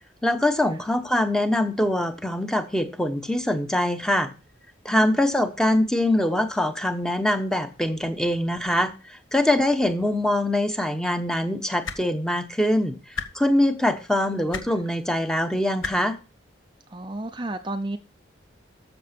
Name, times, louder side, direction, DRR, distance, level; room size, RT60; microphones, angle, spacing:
voice 1, 0.2-4.3 4.8-13.0 13.3-16.2, left 1 dB, 5° left, 1.0 m, -23 dB
voice 2, 4.9-5.2 14.7-14.9 16.9-18.0, right 2 dB, 25° right, 0.6 m, -33 dB
sound 1, 11.8-12.0 13.1-13.3 14.5-14.7 15.8-15.9 17.2-17.3, left 5 dB, 80° left, 1.4 m, -31 dB
13.5 x 6.8 x 4.4 m
head